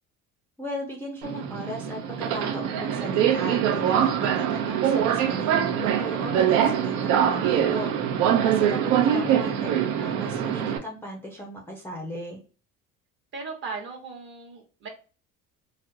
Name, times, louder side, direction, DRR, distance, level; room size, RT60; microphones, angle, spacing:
voice 1, 0.6-7.9 8.4-9.7 10.0-12.4, equal, 5° left, -1 dB, 0.5 m, -37 dB
Subway metro underground, 1.2-10.8, right 9 dB, 75° right, 0.7 m, -24 dB
voice 2, 8.3-9.4 13.3-14.9, right 4 dB, 40° right, 1 dB, 1.1 m, -39 dB
3.9 x 2.0 x 2.6 m, 0.37 s
cardioid pair, 175°, 30 cm